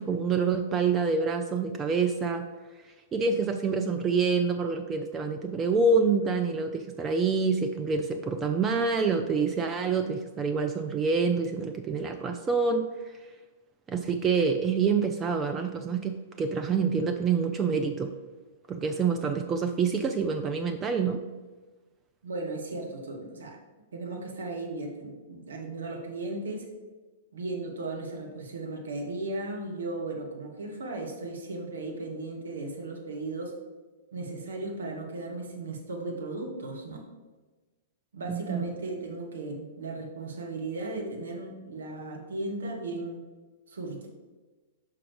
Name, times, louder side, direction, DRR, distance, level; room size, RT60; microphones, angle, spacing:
voice 1, 0.0-2.5 2.8-12.9 13.9-18.1 18.7-21.2 38.3-38.6, right 5 dB, 20° right, 6 dB, 0.4 m, -27 dB
voice 2, 22.2-23.6 23.9-26.7 27.3-33.5 34.1-37.0 38.1-43.2 43.7-44.1, right 2 dB, 70° right, 1 dB, 1.4 m, -36 dB
5.8 x 5.0 x 4.7 m, 1.3 s
figure-of-eight pair, 110°, 0 cm